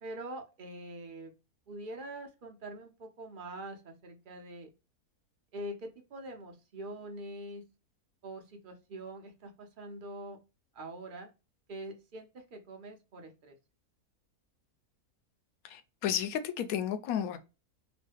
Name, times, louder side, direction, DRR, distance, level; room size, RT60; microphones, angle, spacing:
voice 1, 0.0-1.3 1.7-4.7 5.5-7.6 8.2-10.4 10.7-11.3 11.7-13.5, right 1 dB, 50° right, 0.6 m, -44 dB
voice 2, 15.6-17.4, left 9 dB, 75° left, 1.0 m, -32 dB
3.0 x 2.1 x 3.2 m
omnidirectional pair, 1.6 m